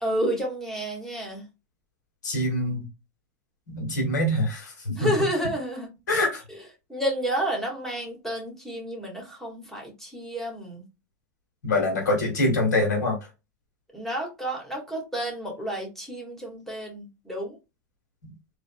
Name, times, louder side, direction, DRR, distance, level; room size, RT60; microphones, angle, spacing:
voice 1, 0.0-1.5 5.0-5.9 6.2-6.3 6.9-10.8 13.9-17.6, equal, 5° left, 1.9 m, -30 dB
voice 2, 2.2-2.9 3.7-5.1 6.1-6.4 11.6-13.2, left 1 dB, 90° left, 1.7 m, -24 dB
3.8 x 3.1 x 2.3 m
hypercardioid pair, 105°, 9 cm